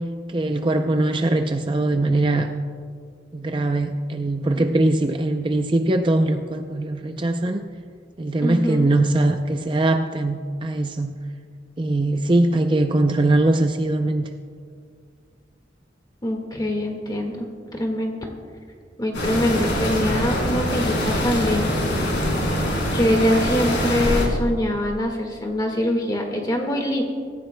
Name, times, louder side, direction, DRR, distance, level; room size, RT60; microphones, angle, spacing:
voice 1, 0.3-2.5 3.3-7.6 8.2-11.1 11.8-14.3, right 2 dB, 25° right, 5 dB, 0.5 m, -21 dB
voice 2, 8.4-8.9 16.2-18.2 19.0-21.7 22.9-27.0, left 1 dB, 20° left, 2 dB, 1.7 m, -24 dB
sound 1, 19.1-24.3, equal, 85° left, 3.7 m, -23 dB
25.5 x 14.5 x 2.2 m, 2.1 s
head